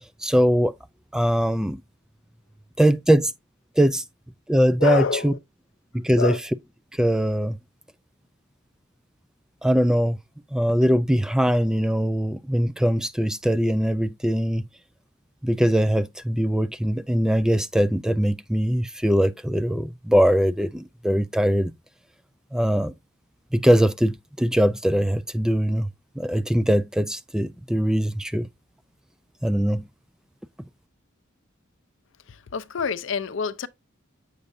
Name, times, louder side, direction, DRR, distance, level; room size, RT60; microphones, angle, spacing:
voice 1, 0.2-0.7 1.1-1.8 2.8-3.3 3.8-4.0 4.5-5.3 5.9-6.4 6.9-7.6 9.6-10.2 10.5-14.7 15.4-21.7 22.5-22.9 23.5-25.9 26.2-28.5 29.4-29.8, equal, 5° right, 0.3 m, -21 dB
voice 2, 4.8-5.4 6.2-6.4 32.3-33.7, left 5 dB, 65° left, 0.6 m, -27 dB
8.2 x 6.5 x 2.6 m
head